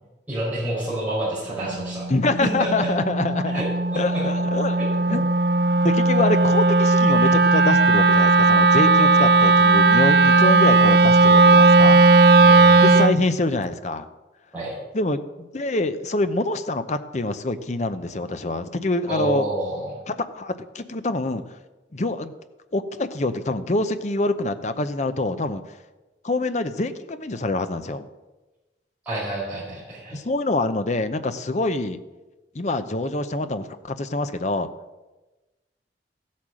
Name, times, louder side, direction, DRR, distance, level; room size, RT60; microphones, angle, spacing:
voice 1, 0.3-2.1 2.4-2.9 3.5-4.2 4.8-5.2 12.3-12.8 14.5-14.8 19.1-20.0 29.0-30.2, right 1 dB, 10° right, -9 dB, 4.6 m, -29 dB
Wind instrument woodwind instrument, 1.6-13.2, right 3 dB, 65° right, 0.5 m, -16 dB
voice 2, 2.1-3.6 4.0-5.2 5.8-12.0 12.8-14.1 14.9-19.5 20.1-21.6 21.9-22.3 22.7-25.8 26.2-28.1 30.1-32.0 32.5-34.7, left 2 dB, 40° left, 10 dB, 0.7 m, -25 dB
14.5 x 8.5 x 6.3 m, 1.1 s
head